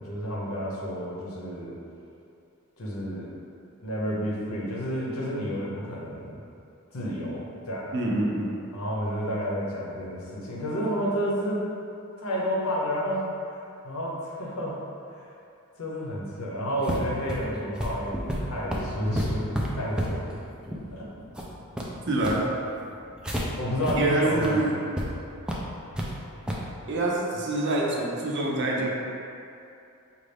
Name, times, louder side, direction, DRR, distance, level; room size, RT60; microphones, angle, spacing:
voice 1, 0.0-1.8 2.8-3.3 3.8-6.4 6.9-7.8 8.7-11.6 12.2-13.6 13.8-14.7 15.1-15.2 15.8-20.3 20.9-21.1 23.6-24.7, equal, 75° left, -4 dB, 0.9 m, -30 dB
voice 2, 7.9-8.5 22.1-22.5 24.0-24.8 26.9-28.9, right 2 dB, 55° right, -2 dB, 0.6 m, -26 dB
sound 1, 16.8-23.4 23.8-24.0 24.3-24.5 25.0-25.1 25.5-26.1 26.5-26.7, equal, 5° right, 0.4 m, -31 dB
5.2 x 2.5 x 3.4 m, 2.6 s
head